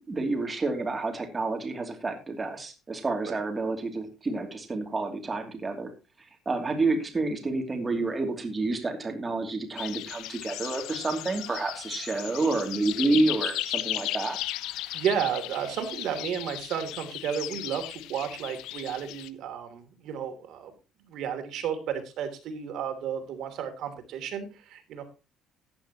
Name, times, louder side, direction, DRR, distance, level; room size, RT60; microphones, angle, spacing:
voice 1, 0.0-5.9 6.5-14.4, right 3 dB, 20° right, 3 dB, 2.8 m, -29 dB
sound 1, 9.8-19.3, left 15 dB, 85° left, 0.7 m, -36 dB
voice 2, 14.9-20.7 21.1-25.0, right 8 dB, 60° right, 7 dB, 3.0 m, -32 dB
15.0 x 10.0 x 3.0 m, 0.29 s
cardioid pair, 160°, 0 cm